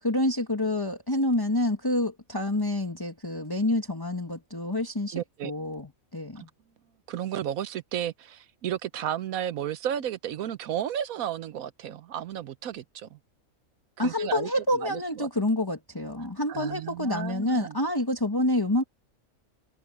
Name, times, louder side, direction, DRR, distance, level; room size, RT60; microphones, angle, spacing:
voice 1, 0.0-6.5 14.0-18.8, left 1 dB, 15° left, 2.0 m, -28 dB
voice 2, 5.1-5.5 6.4-6.5 7.1-13.2 14.0-15.3 16.5-17.8, right 10 dB, 75° right, 1.2 m, -33 dB
omnidirectional pair, 1.5 m